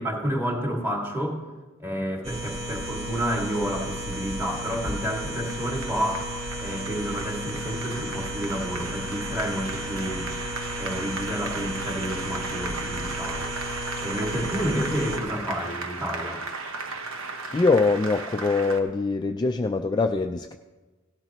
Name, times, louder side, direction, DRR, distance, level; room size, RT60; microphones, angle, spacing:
voice 1, 0.0-1.4 1.8-6.3 6.6-10.3 10.8-13.5 14.0-16.4, equal, 10° right, -1 dB, 2.1 m, -30 dB
sound 1, 2.2-15.2, equal, 30° right, 1.5 m, -34 dB
Applause, 3.5-18.8, right 3 dB, 85° right, 1.2 m, -36 dB
voice 2, 17.5-20.6, left 3 dB, 20° left, 5 dB, 0.3 m, -23 dB
17.5 x 12.0 x 3.0 m, 1.2 s
head